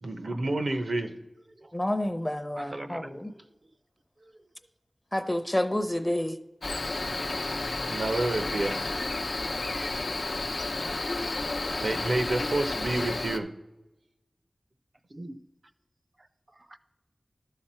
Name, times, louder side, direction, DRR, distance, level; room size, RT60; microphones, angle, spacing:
voice 1, 0.0-1.1 7.9-8.8 11.8-13.5, right 2 dB, 75° right, 6 dB, 0.8 m, -29 dB
voice 2, 1.7-3.3 5.1-6.4, left 1 dB, 15° left, 9 dB, 0.6 m, -29 dB
voice 3, 2.6-3.4 4.2-4.3 15.1-15.4 16.2-16.3 16.6-16.8, right 1 dB, 45° right, 10 dB, 0.5 m, -43 dB
Cricket, 6.6-13.4, left 2 dB, 65° left, 0.6 m, -31 dB
12.0 x 5.8 x 4.3 m, 1.1 s
wide cardioid pair, 75°, 0 cm